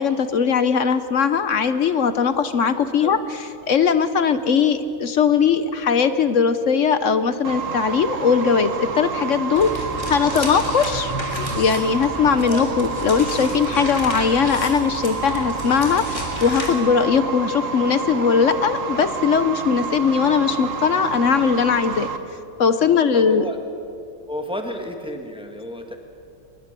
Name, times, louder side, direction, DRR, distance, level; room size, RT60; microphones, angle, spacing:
voice 1, 0.0-3.2 3.7-22.1 22.6-23.5, left 6 dB, 55° left, 11 dB, 1.0 m, -20 dB
sound 1, 7.4-22.2, right 5 dB, 55° right, 1.5 m, -29 dB
sound 2, 9.5-16.7, left 1 dB, 15° left, 3.2 m, -32 dB
voice 2, 10.2-10.7 12.4-12.7 22.8-23.6 24.3-26.0, left 1 dB, 5° right, 4 dB, 1.7 m, -32 dB
23.5 x 21.5 x 6.8 m, 2.5 s
omnidirectional pair, 1.8 m